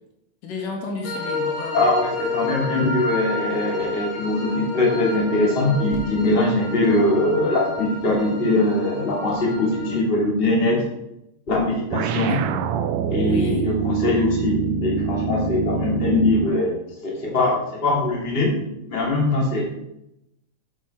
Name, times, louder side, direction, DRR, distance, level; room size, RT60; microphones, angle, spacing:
voice 1, 0.4-1.8 12.3-12.4 13.2-13.7, left 4 dB, 80° left, 1 dB, 3.2 m, -31 dB
sound 1, 1.0-10.0, left 3 dB, 40° left, 1.0 m, -31 dB
voice 2, 1.7-10.8 11.5-12.4 13.1-18.6 18.9-19.6, left 2 dB, 20° left, -3 dB, 2.3 m, -22 dB
sound 2, 11.9-16.6, right 5 dB, 80° right, 1.7 m, -25 dB
10.0 x 6.1 x 4.7 m, 0.84 s
omnidirectional pair, 3.8 m